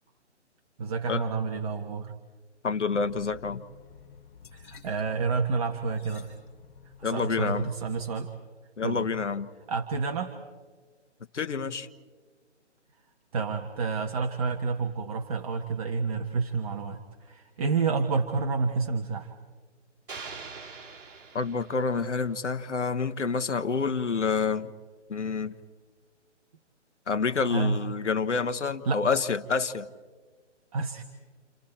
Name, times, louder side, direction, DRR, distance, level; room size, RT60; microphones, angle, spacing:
voice 1, 0.8-2.1 4.5-6.3 7.0-8.3 8.8-9.1 9.7-10.3 13.3-19.3 27.5-27.8 28.9-29.0 30.7-31.0, right 4 dB, 30° right, 4 dB, 1.3 m, -29 dB
voice 2, 2.6-3.6 7.0-7.7 8.8-9.5 11.3-11.9 21.3-24.7 25.1-25.5 27.1-29.9, left 5 dB, 75° left, 9 dB, 1.5 m, -28 dB
sound 1, 2.9-8.1, left 6 dB, 45° left, 7.3 m, -52 dB
sound 2, 20.1-22.2, right 4 dB, 45° right, 4.6 m, -43 dB
30.0 x 29.5 x 4.4 m, 1.5 s
figure-of-eight pair, 145°, 36 cm